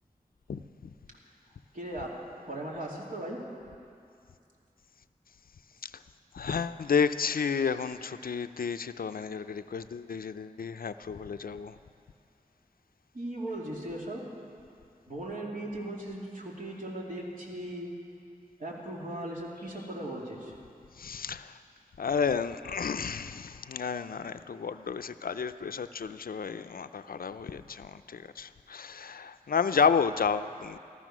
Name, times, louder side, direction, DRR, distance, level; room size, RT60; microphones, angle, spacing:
voice 1, 1.7-2.2 2.5-3.4 13.1-14.2 15.1-17.9 18.6-20.5, right 1 dB, 65° right, -3 dB, 2.8 m, -38 dB
voice 2, 6.3-11.8 21.0-21.6 22.0-30.8, left 6 dB, 75° left, 11 dB, 0.5 m, -31 dB
14.0 x 14.0 x 6.1 m, 2.5 s
wide cardioid pair, 55°, 15 cm